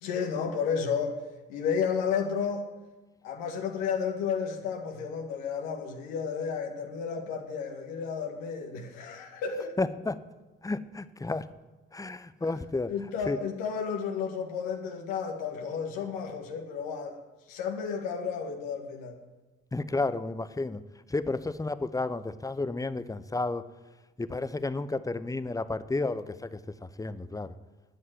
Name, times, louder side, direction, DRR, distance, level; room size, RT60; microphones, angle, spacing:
voice 1, 0.0-1.2 1.5-2.6 3.2-9.8 12.9-17.2 17.5-19.2, left 6 dB, 65° left, 1.8 m, -32 dB
voice 2, 9.8-10.2 10.6-11.5 11.9-12.9 13.3-13.4 19.7-20.8 21.1-23.6 24.2-26.6 27.0-27.5, left 3 dB, 10° left, 0.8 m, -31 dB
9.9 x 9.8 x 9.2 m
figure-of-eight pair, 45°, 36 cm